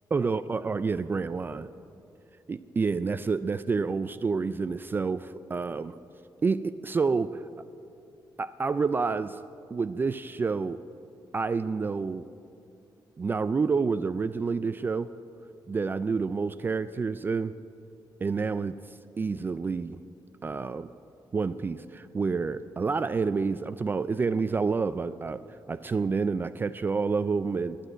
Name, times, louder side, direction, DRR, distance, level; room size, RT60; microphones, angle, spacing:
voice 1, 0.1-1.7 2.5-5.9 6.4-7.5 8.4-9.4 9.7-10.8 11.3-12.3 13.2-15.1 15.7-17.6 18.2-20.0 20.4-20.9 21.3-27.8, right 4 dB, 25° right, 12 dB, 0.3 m, -29 dB
12.5 x 11.5 x 8.9 m, 2.6 s
wide cardioid pair, 140°, 8 cm